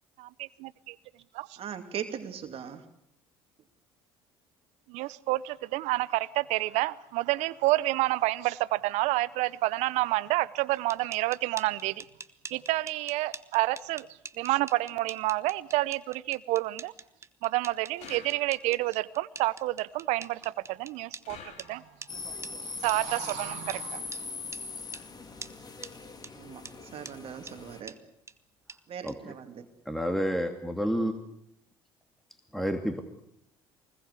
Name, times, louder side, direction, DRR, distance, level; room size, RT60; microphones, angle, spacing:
voice 1, 0.2-1.0 1.3-1.6 4.9-12.0 12.5-14.1 14.4-16.9 17.4-21.4 21.7-21.8 22.8-24.1, right 19 dB, 70° right, 0.9 m, -29 dB
voice 2, 1.6-2.8 26.3-26.6 26.9-27.9 28.9-29.6, right 8 dB, 50° right, 2.7 m, -39 dB
sound 1, 10.7-21.2 21.6-21.7 22.0-22.1 22.4-22.5 22.9-23.0 23.3-23.4 23.7-23.8 24.1-24.2 24.5-24.6 24.9-25.0 25.4-25.5 25.8-25.9 26.2-26.3 26.6-26.7 27.0-27.1 27.5-27.6 27.9-28.0 28.3-28.4 28.7-28.8 29.1-29.2, right 4 dB, 25° right, 1.5 m, -43 dB
sound 2, 18.0-18.9 21.2-22.2, left 6 dB, 65° left, 3.7 m, -49 dB
sound 3, 22.1-27.8, left 4 dB, 35° left, 3.6 m, -41 dB
voice 3, 29.9-31.2 32.5-33.0, equal, ahead, 2.7 m, -29 dB
24.5 x 20.5 x 8.4 m
hypercardioid pair, 65°, 12 cm